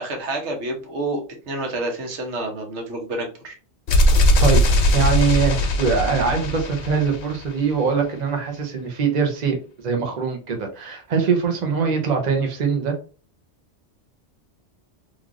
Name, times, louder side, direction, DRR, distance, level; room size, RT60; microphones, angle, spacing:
voice 1, 0.0-3.5, right 2 dB, 90° right, 2 dB, 1.1 m, -29 dB
sound 1, 3.9-7.7, left 1 dB, 65° left, 0.8 m, -19 dB
voice 2, 4.4-12.9, right 5 dB, 45° right, 3 dB, 0.8 m, -22 dB
3.2 x 2.4 x 2.4 m, 0.38 s
omnidirectional pair, 1.1 m